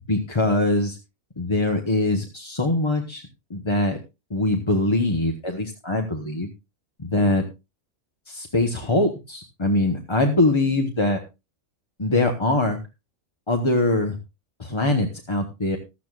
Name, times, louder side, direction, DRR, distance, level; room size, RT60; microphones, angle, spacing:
voice 1, 0.1-1.0 1.4-3.2 3.5-4.0 4.3-6.5 7.0-7.5 8.3-11.2 12.0-12.8 13.5-14.2 14.6-15.8, left 2 dB, 25° left, 4 dB, 1.0 m, -22 dB
15.5 x 12.5 x 2.4 m, 0.25 s
omnidirectional pair, 1.4 m